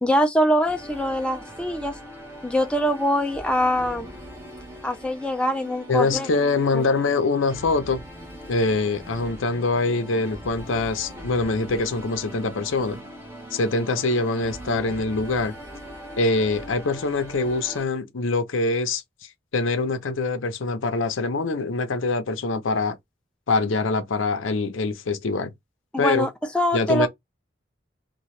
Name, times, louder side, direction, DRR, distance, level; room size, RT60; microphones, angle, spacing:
voice 1, 0.0-2.0 2.4-4.1 4.8-6.3 6.7-6.8 25.9-26.3 26.5-27.1, equal, 5° left, 0.3 m, -23 dB
sound 1, 0.6-17.9, equal, 15° right, 0.9 m, -40 dB
voice 2, 5.9-8.0 8.5-13.0 13.5-15.6 16.2-19.0 19.5-23.0 23.5-25.5 26.0-26.3 26.7-27.1, left 3 dB, 90° left, 0.7 m, -24 dB
2.8 x 2.3 x 3.1 m
head